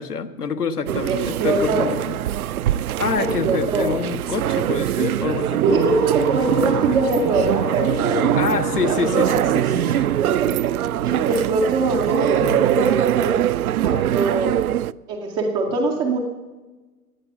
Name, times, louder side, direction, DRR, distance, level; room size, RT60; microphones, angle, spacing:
voice 1, 0.0-2.2 3.0-5.6 8.2-10.1 11.3-11.4 12.0-12.6, left 5 dB, 85° left, 7 dB, 1.3 m, -27 dB
sound 1, 0.9-14.9, right 12 dB, 70° right, 0.5 m, -22 dB
voice 2, 1.1-2.0 3.2-4.0 5.6-8.4 8.8-9.3 10.2-10.5 11.0-13.4 13.8-14.6 15.1-16.2, right 3 dB, 10° right, 1 dB, 0.4 m, -23 dB
Wind instrument woodwind instrument, 5.7-11.5, left 11 dB, 35° left, 0.8 m, -33 dB
16.0 x 10.0 x 5.8 m, 1.2 s
figure-of-eight pair, 115°, 45 cm